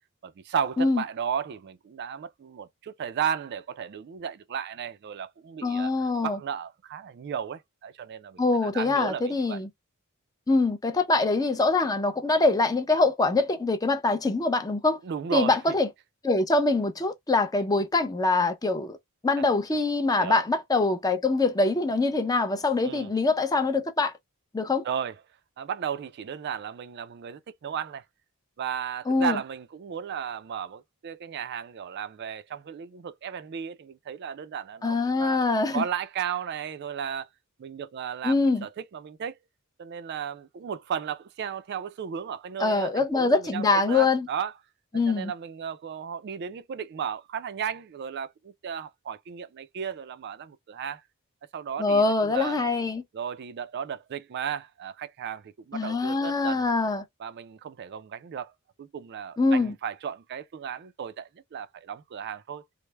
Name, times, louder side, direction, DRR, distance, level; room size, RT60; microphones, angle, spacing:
voice 1, 0.2-9.6 15.0-15.6 20.2-20.4 22.8-23.1 24.8-25.2 25.6-28.0 28.6-35.4 35.7-37.3 37.6-39.4 39.8-44.5 45.1-51.0 51.5-52.6 53.1-56.7 57.2-58.5 58.8-62.6, right 8 dB, 50° right, 0.3 m, -34 dB
voice 2, 5.6-6.4 8.4-9.7 10.5-15.0 15.3-15.9 16.2-19.0 19.2-24.1 24.5-24.8 29.1-29.4 34.8-35.8 38.2-38.7 42.6-44.3 44.9-45.3 51.8-53.0 55.7-57.0 59.4-59.7, left 3 dB, 15° left, 0.5 m, -24 dB
3.2 x 2.0 x 3.2 m
head